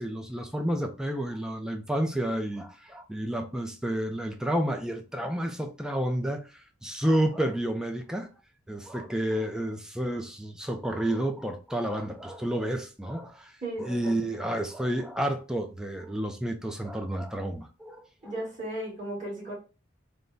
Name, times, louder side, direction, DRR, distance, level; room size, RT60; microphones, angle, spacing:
voice 1, 0.0-6.5 6.8-8.3 8.7-13.5 13.8-18.3, right 1 dB, 5° right, 0.4 m, -30 dB
voice 2, 13.6-14.3 18.2-19.5, right 1 dB, 40° right, 1.9 m, -35 dB
3.4 x 2.1 x 3.9 m
head